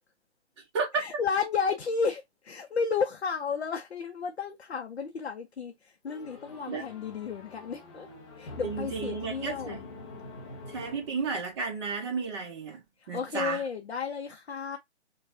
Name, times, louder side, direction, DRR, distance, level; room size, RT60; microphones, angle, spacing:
voice 1, 0.9-8.1 8.4-9.8 13.0-14.8, left 5 dB, 65° left, 0.7 m, -32 dB
sound 1, 6.1-11.6, left 3 dB, 20° left, 0.7 m, -45 dB
voice 2, 8.6-10.0 10.7-12.8 13.1-13.6, right 4 dB, 25° right, 1.1 m, -32 dB
4.5 x 2.4 x 2.5 m
figure-of-eight pair, 140°, 35 cm